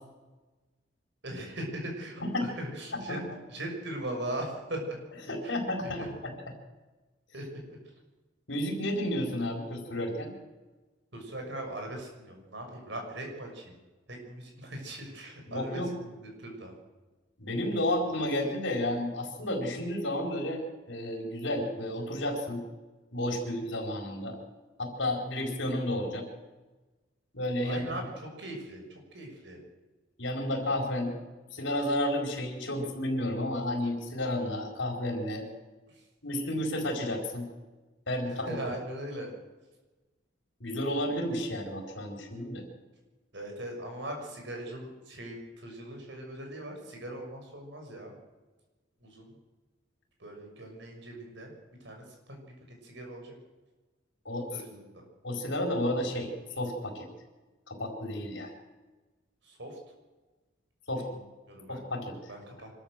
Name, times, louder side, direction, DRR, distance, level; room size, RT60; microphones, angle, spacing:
voice 1, 1.2-3.2 3.5-5.0 5.4-5.5 6.0-6.1 7.3-7.8 11.1-13.7 14.1-16.8 27.6-28.1 28.4-28.8 29.1-29.6 35.9-36.0 38.3-39.3 43.3-48.1 49.0-49.3 50.2-51.5 51.8-52.5 52.8-53.3 54.5-54.8 59.4-59.8 61.0-61.1 61.5-61.8 62.3-62.7, right 1 dB, 65° right, 2 dB, 6.3 m, -40 dB
voice 2, 2.9-3.2 5.3-6.3 8.5-10.3 15.5-15.9 17.4-22.6 23.1-24.4 24.8-26.3 27.3-27.8 30.2-31.1 31.5-35.5 36.2-37.5 38.1-38.7 40.6-42.6 54.2-54.5 55.2-57.1 57.7-58.5 60.9-61.1 61.7-62.1, left 1 dB, 70° left, 2 dB, 4.7 m, -32 dB
25.5 x 13.5 x 7.7 m, 1.2 s
head